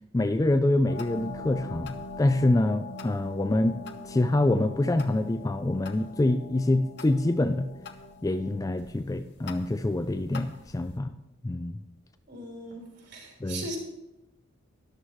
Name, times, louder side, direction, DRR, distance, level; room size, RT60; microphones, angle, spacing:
voice 1, 0.1-7.7 8.2-11.2 11.4-11.8 13.4-13.6, left 2 dB, 15° left, 10 dB, 0.3 m, -26 dB
sound 1, 0.9-11.0, left 3 dB, 55° left, 0.9 m, -43 dB
voice 2, 12.3-13.8, right 2 dB, 55° right, -1 dB, 3.7 m, -39 dB
13.0 x 11.0 x 3.2 m, 0.96 s
head